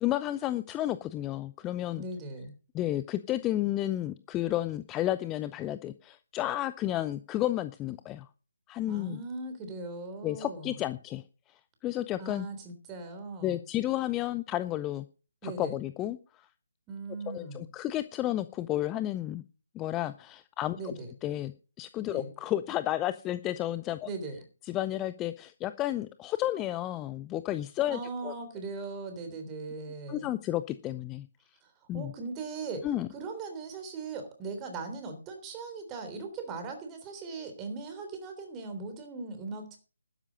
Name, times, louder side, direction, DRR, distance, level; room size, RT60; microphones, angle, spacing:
voice 1, 0.0-2.0 2.7-8.3 8.7-9.2 10.2-11.2 11.8-12.5 13.4-15.1 15.4-16.2 17.3-19.4 19.7-20.9 21.2-24.1 24.7-28.3 30.1-31.3 31.9-32.1 32.8-33.1, left 14 dB, 15° left, 13 dB, 0.5 m, -32 dB
voice 2, 2.0-2.5 8.9-10.8 12.2-13.6 15.4-15.8 16.9-17.6 20.7-21.1 22.1-22.3 24.0-24.4 27.9-30.3 31.6-39.8, right 3 dB, 15° right, 6 dB, 3.4 m, -39 dB
12.0 x 10.0 x 5.2 m, 0.37 s
figure-of-eight pair, 150°, 0 cm